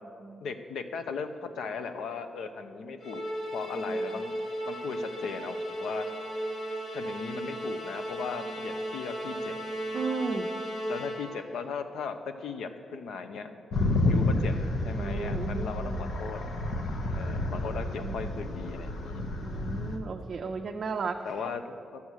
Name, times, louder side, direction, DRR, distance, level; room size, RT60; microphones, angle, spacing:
voice 1, 0.4-4.3 4.6-6.0 6.9-9.6 10.9-13.6 14.0-14.6 14.8-16.4 17.1-19.2 21.2-22.0, left 5 dB, 90° left, 9 dB, 0.7 m, -37 dB
Musical instrument, 3.0-11.5, equal, 40° left, 1.7 m, -35 dB
voice 2, 9.9-10.5 15.0-16.1 17.9-18.3 19.4-21.2, right 4 dB, 40° right, 2 dB, 0.5 m, -35 dB
sound 1, 13.7-20.0, left 2 dB, 65° left, 0.9 m, -30 dB
12.0 x 7.1 x 6.4 m, 2.5 s
wide cardioid pair, 170°, 0 cm